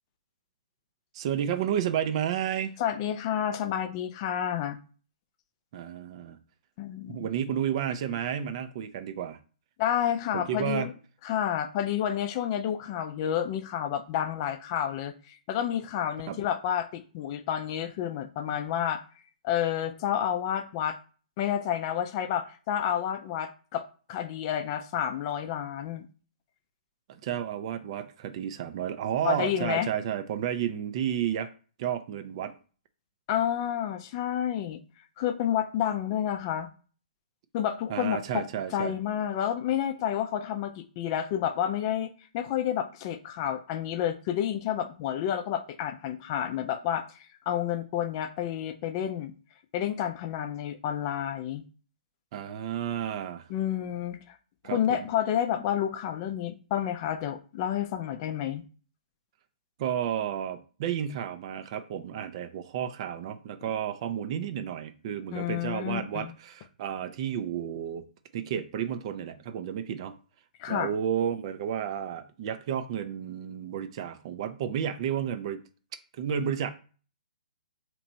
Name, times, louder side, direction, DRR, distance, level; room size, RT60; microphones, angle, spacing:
voice 1, 1.1-2.7 5.7-6.4 7.1-9.4 10.3-10.9 16.3-16.4 27.1-31.5 31.8-32.5 37.9-38.9 52.3-53.5 54.6-55.0 59.8-68.1 68.3-70.1 70.7-75.6 76.1-76.7, right 9 dB, 40° right, 0.5 m, -31 dB
voice 2, 2.8-4.8 6.8-7.2 9.8-10.9 11.2-19.0 19.4-21.0 21.4-23.8 24.1-26.1 29.2-29.9 33.3-34.8 35.2-36.7 37.5-38.5 38.7-49.3 49.7-51.6 53.5-54.4 54.6-58.6 65.3-66.3 70.6-70.9, left 10 dB, 35° left, 0.4 m, -30 dB
3.0 x 2.5 x 4.2 m
figure-of-eight pair, 125°, 4 cm